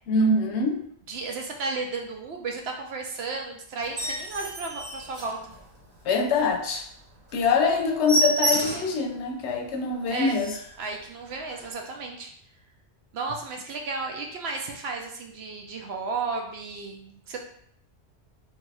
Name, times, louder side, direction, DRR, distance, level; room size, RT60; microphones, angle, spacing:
voice 1, 0.1-0.8 6.1-6.8 7.3-10.5, left 4 dB, 75° left, 4 dB, 0.8 m, -24 dB
voice 2, 1.1-5.5 10.1-10.4 10.8-12.3 13.1-17.4, right 4 dB, 65° right, 1 dB, 0.8 m, -33 dB
sound 1, 3.8-6.0 6.4-6.5 6.9-7.0 7.3-7.4 7.7-9.0 9.5-9.6 9.9-10.0 10.2-10.8 11.5-11.7, right 2 dB, 50° right, 1.1 m, -29 dB
3.6 x 2.4 x 3.2 m, 0.66 s
omnidirectional pair, 1.2 m